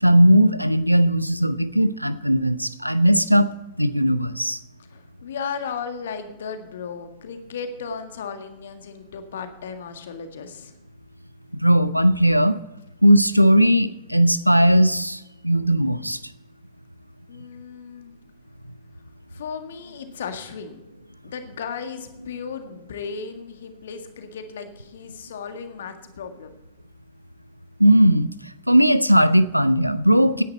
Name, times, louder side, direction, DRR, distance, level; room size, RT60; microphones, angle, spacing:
voice 1, 0.0-4.6 11.5-12.6 13.0-16.2 27.8-30.4, equal, 90° right, 15 dB, 0.7 m, -18 dB
voice 2, 4.9-10.7 17.3-18.1 19.3-20.8 21.2-26.5, left 6 dB, 65° left, 7 dB, 1.7 m, -35 dB
16.5 x 10.5 x 4.3 m, 0.91 s
figure-of-eight pair, 90°, 0 cm